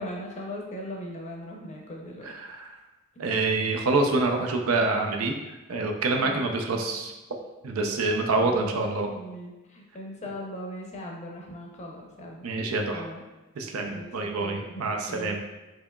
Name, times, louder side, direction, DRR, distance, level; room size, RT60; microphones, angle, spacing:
voice 1, 0.0-2.3 8.3-12.5 12.9-13.2 13.8-15.4, equal, 35° left, -1 dB, 0.6 m, -39 dB
voice 2, 2.2-2.7 3.2-5.3 5.7-7.1 7.6-9.1 12.4-13.1 13.6-15.4, right 3 dB, 80° right, 3 dB, 0.5 m, -26 dB
4.5 x 2.9 x 2.2 m, 1.1 s
head